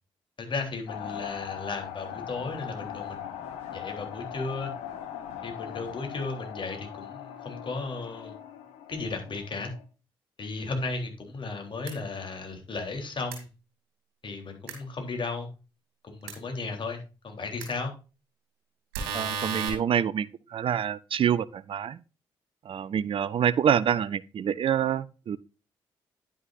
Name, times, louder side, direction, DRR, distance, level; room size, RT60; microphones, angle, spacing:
voice 1, 0.4-3.4 3.7-4.7 5.4-8.4 8.9-9.7 10.4-13.5 14.2-15.5 16.0-17.9, left 3 dB, 45° left, 3.5 m, -35 dB
sound 1, 0.9-9.8, left 9 dB, 75° left, 1.2 m, -40 dB
sound 2, 11.8-11.9 13.3-13.4 14.7-14.8 16.3-16.4 17.6-17.7 18.9-19.7, right 5 dB, 80° right, 2.5 m, -32 dB
voice 2, 19.1-22.0 22.7-25.4, right 8 dB, 50° right, 0.6 m, -26 dB
10.0 x 9.5 x 2.6 m
hypercardioid pair, 40°, 12 cm